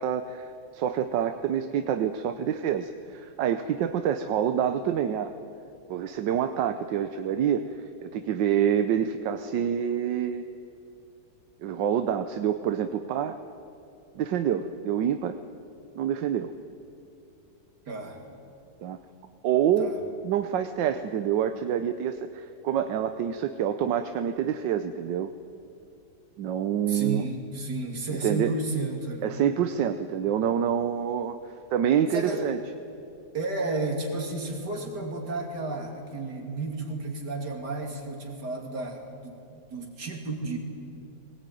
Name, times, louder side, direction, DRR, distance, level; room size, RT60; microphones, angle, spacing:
voice 1, 0.0-5.3 5.9-7.6 8.0-10.4 11.6-13.4 14.1-15.4 15.9-16.5 18.8-19.0 19.4-19.9 20.2-25.3 26.4-27.2 28.2-28.5 29.2-31.4 31.7-32.6, right 9 dB, 85° right, 8 dB, 1.5 m, -27 dB
voice 2, 17.9-18.2 19.8-20.0 26.9-29.4 32.1-32.5 33.3-40.6, right 2 dB, 65° right, 2 dB, 3.4 m, -32 dB
20.5 x 19.0 x 9.2 m, 2.7 s
omnidirectional pair, 1.9 m